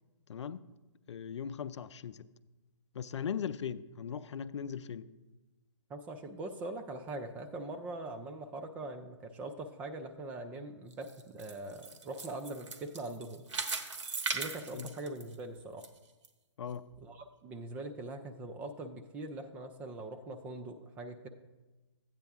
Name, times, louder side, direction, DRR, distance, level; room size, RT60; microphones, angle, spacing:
voice 1, 0.3-0.6 1.1-2.3 2.9-5.1 14.7-14.9 16.6-16.8, left 7 dB, 70° left, 0.5 m, -39 dB
voice 2, 5.9-13.5 14.3-15.8 17.0-21.3, right 2 dB, 10° right, 0.3 m, -42 dB
sound 1, 10.9-15.9 16.2-16.3 16.9-17.0, right 4 dB, 80° right, 1.3 m, -39 dB
13.0 x 8.9 x 3.5 m
hypercardioid pair, 150°, 16 cm